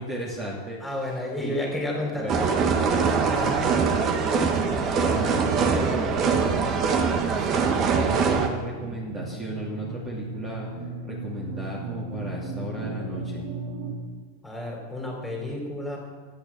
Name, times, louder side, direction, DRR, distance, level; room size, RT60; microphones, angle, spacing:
voice 1, 0.0-0.8 1.1-1.7 2.1-2.5 3.3-6.6 7.3-10.7 11.1-13.4, right 1 dB, 20° right, -4 dB, 2.9 m, -36 dB
voice 2, 0.8-2.5 14.4-16.0, left 1 dB, 5° left, -1 dB, 3.9 m, -31 dB
sound 1, 2.3-8.5, right 5 dB, 35° right, 1.4 m, -23 dB
sound 2, 6.3-13.9, right 2 dB, 70° right, 3.0 m, -37 dB
12.5 x 9.1 x 7.3 m, 1.5 s
supercardioid pair, 140°, 0 cm